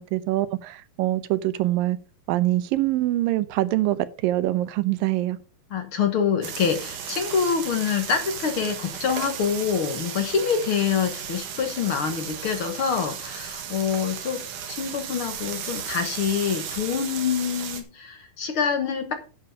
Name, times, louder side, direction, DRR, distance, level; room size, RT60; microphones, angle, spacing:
voice 1, 0.0-2.0 2.3-5.4, right 15 dB, 90° right, 2.5 m, -24 dB
voice 2, 5.7-19.1, left 7 dB, 55° left, 1.6 m, -26 dB
sound 1, 6.4-17.8, right 8 dB, 70° right, 3.1 m, -35 dB
10.5 x 5.8 x 6.5 m
omnidirectional pair, 3.9 m